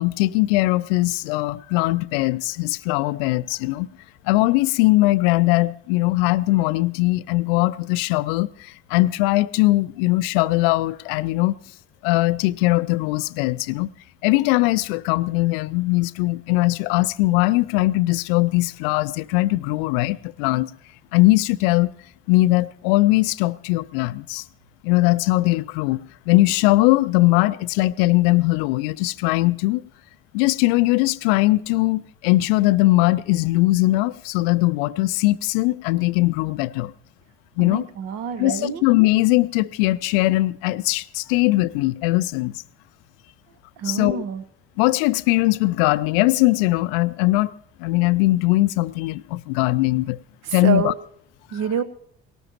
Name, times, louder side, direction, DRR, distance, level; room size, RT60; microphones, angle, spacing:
voice 1, 0.0-3.9 4.3-11.6 12.0-13.9 14.2-20.7 21.1-21.9 22.3-24.4 24.8-26.0 26.3-29.8 30.3-36.9 37.6-37.9 38.4-42.5 43.8-44.2 44.8-47.5 47.8-50.2 50.5-50.9, left 19 dB, 65° left, 0.5 m, -20 dB
voice 2, 37.6-38.8 43.8-44.4 50.4-51.0 51.5-51.8, right 7 dB, 55° right, 1.0 m, -27 dB
19.5 x 18.0 x 3.0 m
figure-of-eight pair, 50°, 31 cm